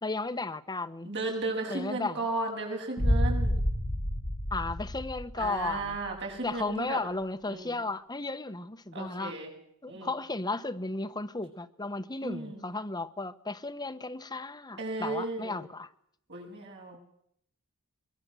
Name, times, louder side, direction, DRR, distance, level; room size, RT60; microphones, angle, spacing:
voice 1, 0.0-1.1 1.7-2.2 4.5-6.0 6.4-9.4 9.8-15.9, left 3 dB, 20° left, 1.0 m, -34 dB
voice 2, 1.0-3.5 5.4-7.0 7.5-7.7 8.9-9.5 9.9-10.1 12.2-12.6 14.8-15.6 16.3-17.0, right 2 dB, 55° right, 7.8 m, -35 dB
sound 1, 3.0-5.9, equal, 40° left, 3.9 m, -29 dB
23.0 x 22.5 x 7.7 m
head